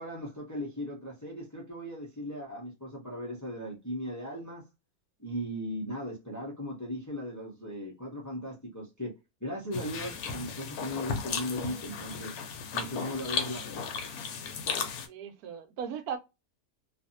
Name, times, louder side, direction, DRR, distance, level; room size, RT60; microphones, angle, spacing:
voice 1, 0.0-4.6 5.2-9.1 9.4-12.4 12.7-14.0, equal, 15° left, 0.6 m, -37 dB
sound 1, 9.7-15.1, left 6 dB, 85° left, 1.1 m, -35 dB
voice 2, 15.1-16.2, right 7 dB, 80° right, 1.1 m, -37 dB
2.6 x 2.4 x 2.6 m
omnidirectional pair, 1.6 m